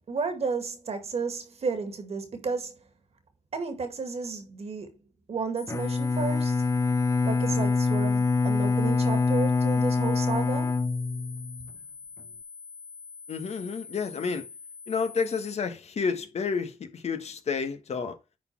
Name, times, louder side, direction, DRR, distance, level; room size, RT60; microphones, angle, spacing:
voice 1, 0.1-2.8 3.5-4.9 5.3-6.7 7.2-10.8, right 4 dB, 60° right, 2.0 m, -32 dB
sound 1, 5.6-15.6, left 5 dB, 5° left, 0.7 m, -45 dB
Bowed string instrument, 5.7-11.7, left 4 dB, 25° left, 0.3 m, -25 dB
voice 2, 13.3-14.5 14.9-18.2, left 5 dB, 65° left, 1.4 m, -30 dB
10.0 x 4.3 x 4.6 m
wide cardioid pair, 120°, 12 cm